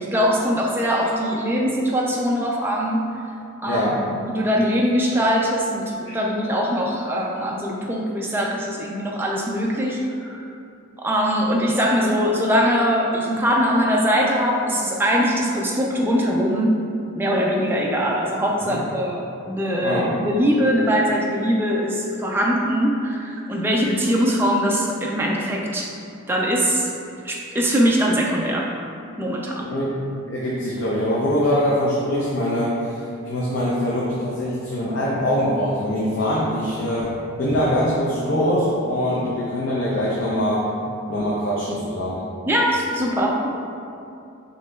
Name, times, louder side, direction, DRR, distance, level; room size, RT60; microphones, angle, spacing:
voice 1, 0.0-3.1 3.6-3.9 4.2-10.5 11.0-16.8 17.2-25.9 26.3-26.9 27.2-28.7 29.2-29.7 42.5-43.6, equal, 10° right, -2 dB, 0.3 m, -22 dB
voice 2, 3.7-4.0 6.1-6.2 18.6-18.8 19.8-20.1 29.6-33.0 33.3-37.1 37.4-40.7 41.1-42.2, equal, 55° left, -6 dB, 0.5 m, -23 dB
6.2 x 2.9 x 2.3 m, 2.6 s
head